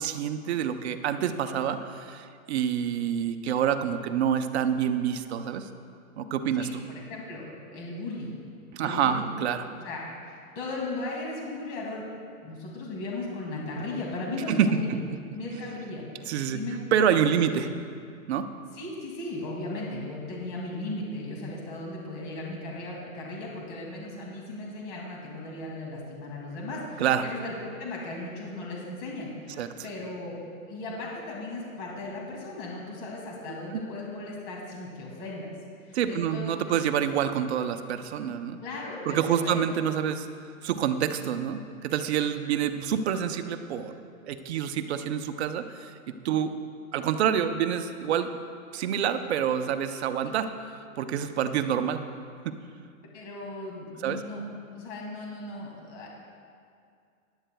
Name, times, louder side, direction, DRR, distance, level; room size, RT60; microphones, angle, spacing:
voice 1, 0.0-5.7 6.2-6.8 8.7-9.6 14.5-15.0 16.3-16.6 16.9-17.7 18.3-18.5 27.0-27.3 29.6-29.7 33.7-33.8 35.9-38.6 39.1-40.3 40.6-46.5 46.9-48.4 48.7-52.0 52.4-52.5 54.0-54.2, right 8 dB, 50° right, 8 dB, 0.7 m, -27 dB
voice 2, 6.6-7.4 7.7-8.3 8.8-9.3 9.8-10.0 10.3-12.0 12.4-15.0 15.3-16.0 16.5-16.8 17.3-17.4 18.7-30.4 30.7-35.5 35.8-36.5 38.6-39.6 53.1-54.4 54.7-56.1, left 2 dB, 40° left, -2 dB, 2.4 m, -37 dB
17.0 x 11.0 x 2.2 m, 2.3 s
hypercardioid pair, 145°, 42 cm